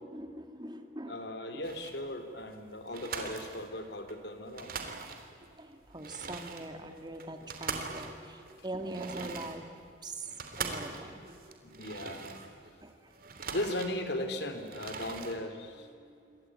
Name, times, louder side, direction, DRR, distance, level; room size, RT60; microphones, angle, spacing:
voice 1, 0.1-1.2 1.5-1.6 5.5-9.6 10.0-10.3 10.6-11.8 12.8-13.1 16.0-16.4, right 2 dB, 25° right, 6 dB, 2.2 m, -43 dB
voice 2, 1.1-4.8 11.6-12.4 13.5-15.9, left 1 dB, 65° left, 7 dB, 3.1 m, -37 dB
sound 1, 1.6-2.1 2.5-2.6 2.9-4.2 4.4-5.5 5.9-12.7 13.1-14.3 14.6-15.4, right 5 dB, 50° right, 3.1 m, -42 dB
27.5 x 24.0 x 9.0 m, 2.4 s
head